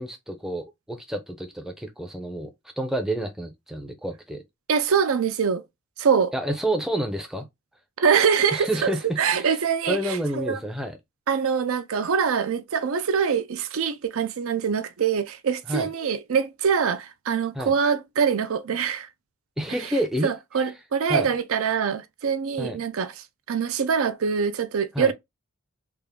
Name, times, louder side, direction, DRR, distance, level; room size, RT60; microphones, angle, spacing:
voice 1, 0.0-4.4 6.3-7.5 8.5-9.6 9.9-11.0 15.7-15.9 17.5-17.7 19.6-20.3 21.1-21.3 22.6-22.8 24.9-25.1, right 1 dB, ahead, 0.5 m, -29 dB
voice 2, 4.7-5.6 6.0-6.3 8.0-10.6 11.3-19.1 19.8-19.9 20.2-25.1, right 6 dB, 75° right, 0.5 m, -24 dB
3.4 x 2.5 x 3.6 m
head